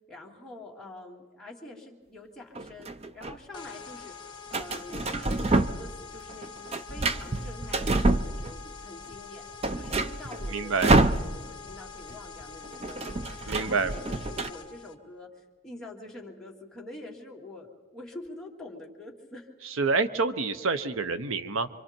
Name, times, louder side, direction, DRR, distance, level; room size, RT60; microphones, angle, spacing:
voice 1, 0.1-4.1 4.5-19.7, left 2 dB, 5° left, -3 dB, 2.6 m, -46 dB
sound 1, 2.6-3.4 4.5-6.0 6.3-8.8 9.1-9.2 9.5-11.7 12.0-12.1 12.4-14.5, right 2 dB, 30° right, 0.6 m, -27 dB
sound 2, 3.5-14.9, left 6 dB, 20° left, 1.5 m, -45 dB
voice 2, 10.5-10.9 13.5-13.9 19.8-21.7, right 4 dB, 75° right, 11 dB, 0.8 m, -27 dB
27.0 x 25.0 x 4.5 m, 1.4 s
head